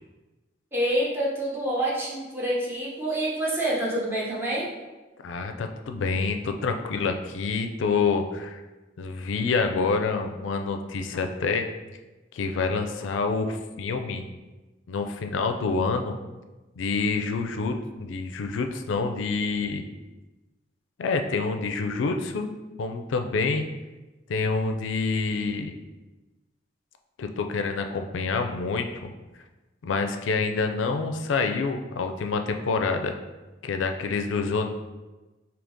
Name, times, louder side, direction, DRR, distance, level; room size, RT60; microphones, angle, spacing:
voice 1, 0.7-4.7, right 1 dB, 10° right, -6 dB, 0.8 m, -27 dB
voice 2, 5.2-8.6 9.0-11.7 12.3-14.2 14.9-16.1 16.8-19.8 21.0-22.5 22.8-23.7 24.3-25.8 27.2-29.1 29.8-33.1 33.6-34.7, left 4 dB, 85° left, 6 dB, 0.4 m, -27 dB
3.5 x 2.8 x 3.9 m, 1.2 s
head